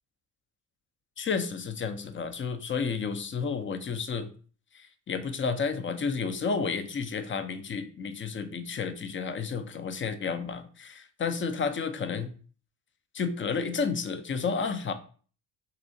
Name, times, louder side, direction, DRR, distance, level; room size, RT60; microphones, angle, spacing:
voice 1, 1.2-4.3 4.7-12.3 13.1-14.9, left 5 dB, 25° left, 10 dB, 0.4 m, -31 dB
4.2 x 2.7 x 2.6 m, 0.41 s
supercardioid pair, 60°, 47 cm